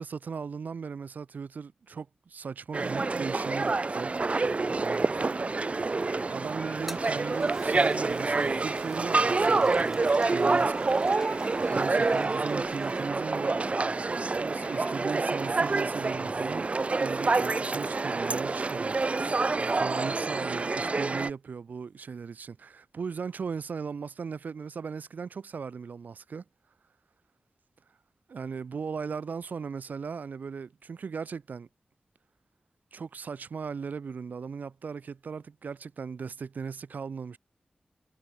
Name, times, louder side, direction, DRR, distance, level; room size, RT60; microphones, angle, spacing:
voice 1, 0.0-4.1 4.8-5.1 6.3-10.7 11.7-13.6 14.3-16.7 17.0-19.0 19.6-26.4 28.3-31.7 32.9-37.4, right 5 dB, 85° right, 1.0 m, -37 dB
sound 1, 2.7-21.3, right 3 dB, 50° right, 0.8 m, -27 dB
sound 2, 4.8-16.7, left 3 dB, 50° left, 2.0 m, -54 dB
Toilet flush, 6.8-13.1, equal, 5° right, 2.9 m, -49 dB
cardioid pair, 50°, 3 cm